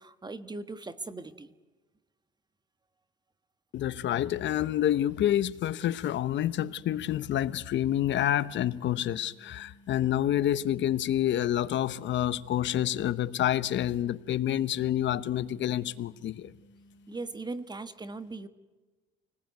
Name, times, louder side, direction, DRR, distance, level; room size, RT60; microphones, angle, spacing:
voice 1, 0.0-1.5 17.1-18.5, right 3 dB, 20° right, 1.5 m, -39 dB
voice 2, 3.7-16.5, left 12 dB, 60° left, 0.9 m, -28 dB
sound 1, 6.7-17.4, equal, 45° right, 3.8 m, -58 dB
28.5 x 20.0 x 9.5 m
cardioid pair, 105°, 21 cm